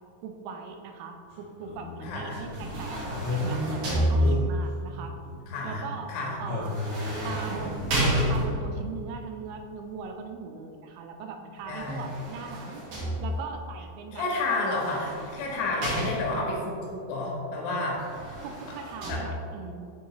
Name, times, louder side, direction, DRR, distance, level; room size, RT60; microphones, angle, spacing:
voice 1, 0.2-5.2 5.6-6.1 6.4-6.8 7.2-12.8 13.2-14.3 18.4-19.9, right 5 dB, 85° right, 4 dB, 2.7 m, -40 dB
sound 1, 1.3-2.7 3.1-6.2 6.5-7.4, left 1 dB, 60° left, 1.9 m, -33 dB
voice 2, 2.0-2.4 5.5-6.4 11.7-12.1 14.1-18.0 19.1-19.2, left 2 dB, 85° left, -2 dB, 3.5 m, -30 dB
sound 2, 2.3-4.7 6.6-8.9 11.7-13.6 14.6-16.6 17.9-19.1, equal, 55° right, 2.4 m, -30 dB
9.3 x 3.9 x 2.9 m, 2.4 s
omnidirectional pair, 5.1 m